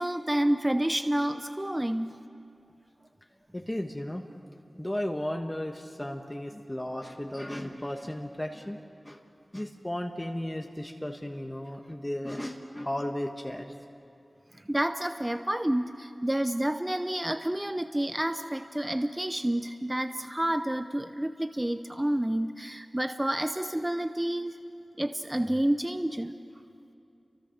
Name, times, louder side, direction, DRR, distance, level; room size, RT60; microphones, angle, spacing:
voice 1, 0.0-2.2 14.6-24.6 25.0-26.4, right 1 dB, 15° right, 8 dB, 0.7 m, -29 dB
voice 2, 3.5-4.3 4.8-8.8 9.0-9.2 9.5-13.7, left 1 dB, 15° left, 3 dB, 1.4 m, -35 dB
29.5 x 25.0 x 6.6 m, 2.7 s
wide cardioid pair, 75°, 0 cm